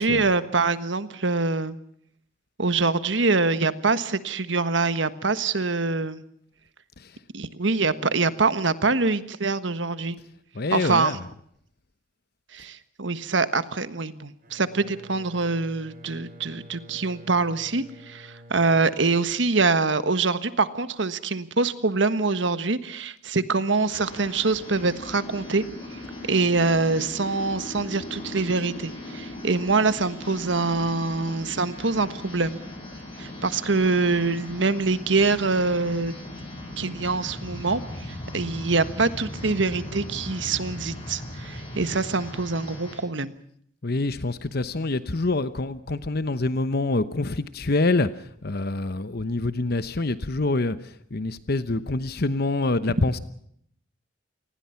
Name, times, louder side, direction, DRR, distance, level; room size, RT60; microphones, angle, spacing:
voice 1, 0.0-1.8 2.6-6.2 7.3-10.2 10.7-11.1 12.5-25.6 26.3-32.7 33.2-36.1 36.8-38.0 38.3-43.3, right 3 dB, 70° right, 1.4 m, -24 dB
voice 2, 10.5-11.3 43.8-53.2, left 2 dB, 55° left, 1.0 m, -26 dB
Bowed string instrument, 14.4-19.9, equal, 50° right, 5.4 m, -49 dB
sound 1, 23.9-43.0, left 1 dB, 30° left, 7.5 m, -38 dB
28.0 x 20.0 x 5.8 m
head